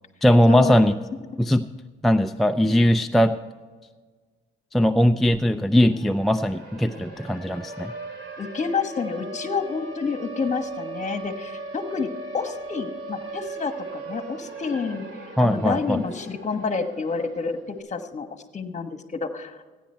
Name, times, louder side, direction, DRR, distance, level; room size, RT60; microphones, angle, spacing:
voice 1, 0.2-1.0 1.4-1.6 2.0-3.3 4.7-7.9 15.4-16.0, equal, ahead, 6 dB, 0.4 m, -19 dB
Siren, 5.6-17.7, right 2 dB, 55° right, 3.0 m, -38 dB
voice 2, 8.4-18.3 18.5-19.6, left 5 dB, 35° left, 7 dB, 1.4 m, -29 dB
15.5 x 10.0 x 4.4 m, 1.4 s
cardioid pair, 90°, 20 cm